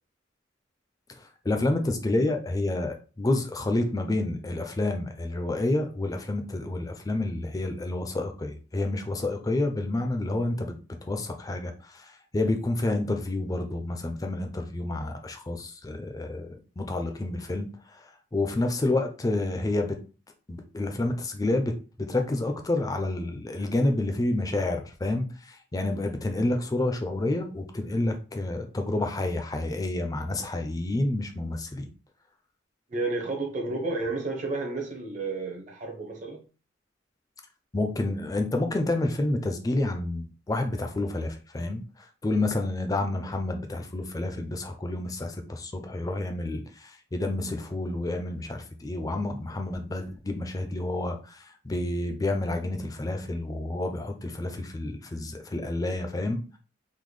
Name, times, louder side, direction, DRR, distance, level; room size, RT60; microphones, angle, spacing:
voice 1, 1.4-10.8 11.1-18.1 18.3-20.0 20.5-21.7 22.0-31.9 37.7-56.4, left 2 dB, 20° left, 5 dB, 0.4 m, -29 dB
voice 2, 32.9-36.4, right 3 dB, 40° right, 0 dB, 0.6 m, -31 dB
3.6 x 2.1 x 3.2 m, 0.36 s
head